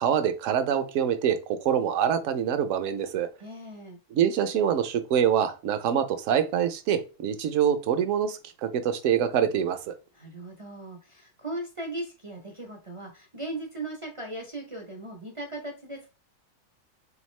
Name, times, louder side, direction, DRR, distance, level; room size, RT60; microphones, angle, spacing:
voice 1, 0.0-3.3 4.1-10.0, right 8 dB, 65° right, 0.8 m, -25 dB
voice 2, 3.4-4.0 10.1-16.1, right 1 dB, 40° right, 0.4 m, -38 dB
3.8 x 3.5 x 3.1 m
omnidirectional pair, 1.7 m